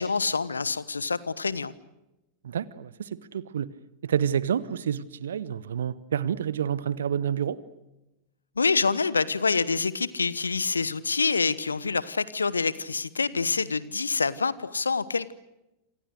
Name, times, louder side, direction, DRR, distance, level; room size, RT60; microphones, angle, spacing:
voice 1, 0.0-1.7 8.6-15.3, left 4 dB, 75° left, 18 dB, 1.1 m, -26 dB
voice 2, 2.4-3.7 4.0-7.6, right 8 dB, 65° right, 19 dB, 1.0 m, -28 dB
27.5 x 27.0 x 6.4 m, 0.95 s
figure-of-eight pair, 90°, 0 cm